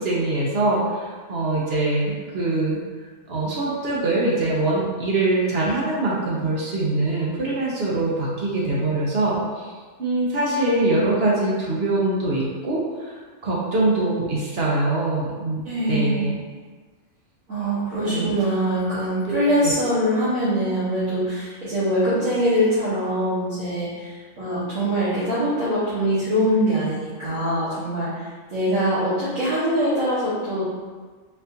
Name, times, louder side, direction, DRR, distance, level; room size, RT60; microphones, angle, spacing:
voice 1, 0.0-2.8 3.3-9.7 10.0-15.6 15.9-16.4 18.0-18.3 19.3-19.7, right 2 dB, 55° right, -5 dB, 0.9 m, -23 dB
voice 2, 15.6-16.3 17.5-30.6, equal, 85° right, -14 dB, 1.6 m, -23 dB
4.2 x 2.4 x 2.7 m, 1.4 s
omnidirectional pair, 1.4 m